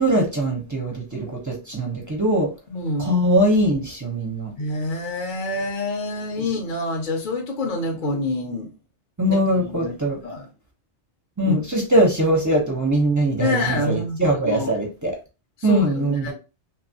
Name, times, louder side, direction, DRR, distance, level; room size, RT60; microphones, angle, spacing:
voice 1, 0.0-2.5 3.0-4.5 9.2-10.2 11.4-15.2 15.6-16.3, right 1 dB, 25° right, 0.5 m, -21 dB
voice 2, 2.7-3.1 4.6-8.7 9.3-9.9 10.2-10.5 11.4-11.6 13.4-14.7 15.6-16.3, left 2 dB, 55° left, 0.6 m, -27 dB
2.9 x 2.3 x 2.6 m
omnidirectional pair, 1.2 m